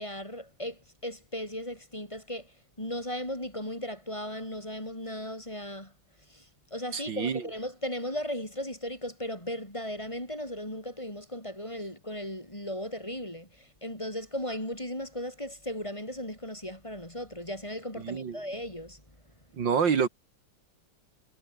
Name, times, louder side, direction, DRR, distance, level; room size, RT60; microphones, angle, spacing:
voice 1, 0.0-5.9 6.3-19.0, equal, 15° left, 5.6 m, -37 dB
voice 2, 6.9-7.4 18.0-18.4 19.6-20.1, right 6 dB, 70° right, 2.6 m, -27 dB
omnidirectional pair, 2.1 m